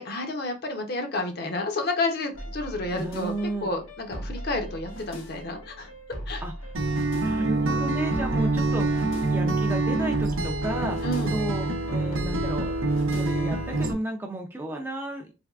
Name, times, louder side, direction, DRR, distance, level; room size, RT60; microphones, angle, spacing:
voice 1, 0.0-3.3 3.6-6.4 11.0-11.4, left 2 dB, 50° left, 4 dB, 0.7 m, -30 dB
sound 1, 2.3-13.6, equal, 85° left, 1.0 m, -39 dB
voice 2, 3.0-3.7 6.4-6.5 7.2-11.0 11.3-12.8 13.1-15.3, right 1 dB, 10° right, 2 dB, 0.4 m, -33 dB
Acoustic guitar, 6.7-13.9, right 2 dB, 75° right, 0.6 m, -26 dB
3.4 x 3.1 x 2.3 m, 0.30 s
head